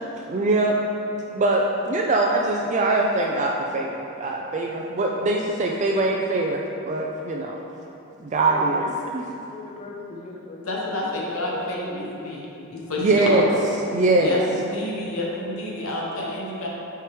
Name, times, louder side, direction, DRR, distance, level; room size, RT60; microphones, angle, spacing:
voice 1, 0.3-0.8 1.3-7.6 8.2-9.2 13.0-13.5 13.9-14.4, right 2 dB, 35° right, 0 dB, 0.3 m, -22 dB
voice 2, 9.0-10.6 11.2-12.1 12.7-12.8, left 3 dB, 30° left, -1 dB, 0.7 m, -40 dB
voice 3, 10.6-12.4 12.7-13.4 14.2-16.7, left 1 dB, 65° left, -4 dB, 1.0 m, -29 dB
9.0 x 4.7 x 3.1 m, 2.8 s
head